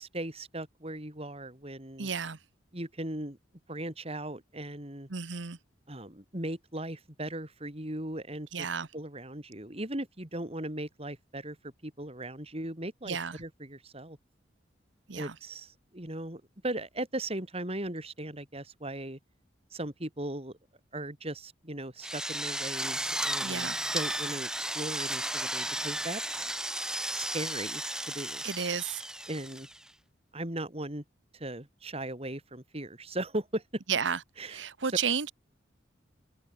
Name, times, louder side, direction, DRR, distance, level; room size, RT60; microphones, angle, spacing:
voice 1, 0.0-2.1 2.7-3.4 3.7-5.1 5.9-8.7 8.9-14.2 15.1-19.2 19.7-20.6 20.9-26.5 27.1-28.4 29.3-29.7 30.3-31.0 31.3-33.8 34.4-34.6, right 1 dB, 30° right, 4.3 m, -38 dB
voice 2, 2.0-2.4 5.1-5.6 8.5-8.9 13.1-13.4 15.1-15.4 23.4-23.8 28.4-29.0 33.9-35.3, right 6 dB, 75° right, 1.1 m, -32 dB
Drill, 22.0-29.9, right 1 dB, 5° right, 3.9 m, -34 dB
head